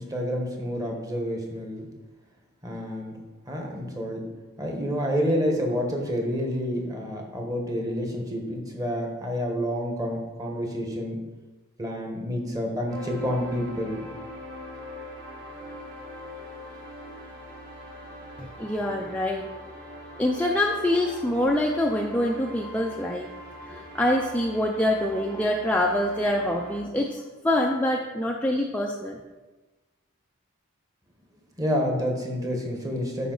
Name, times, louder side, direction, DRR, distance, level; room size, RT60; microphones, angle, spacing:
voice 1, 0.0-1.9 2.6-3.2 3.5-4.2 4.6-11.2 11.8-14.1 31.6-33.3, equal, 15° right, 1 dB, 1.2 m, -29 dB
sound 1, 12.9-26.8, left 1 dB, 55° right, 1.6 m, -42 dB
voice 2, 18.4-19.5 20.2-23.3 23.9-29.2, left 1 dB, 5° left, 0 dB, 0.4 m, -25 dB
9.4 x 5.1 x 3.9 m, 1.2 s
head